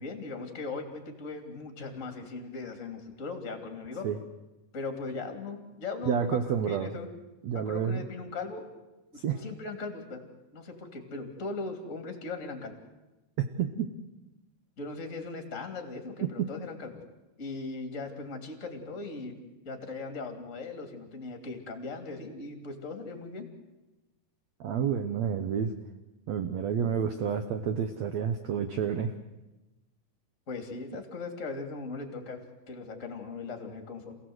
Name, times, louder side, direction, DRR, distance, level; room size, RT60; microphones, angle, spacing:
voice 1, 0.0-4.1 4.7-6.4 6.7-7.1 7.5-8.6 9.1-10.2 10.5-12.7 14.8-16.9 17.4-19.3 19.6-23.5 30.5-32.4 32.7-34.1, left 3 dB, 20° left, 5 dB, 2.5 m, -39 dB
voice 2, 6.0-6.9 7.4-8.1 9.2-9.4 13.4-13.9 16.2-16.5 24.6-25.7 26.3-29.1, right 7 dB, 90° right, 8 dB, 1.5 m, -29 dB
28.0 x 17.0 x 8.0 m, 1.1 s
omnidirectional pair, 4.6 m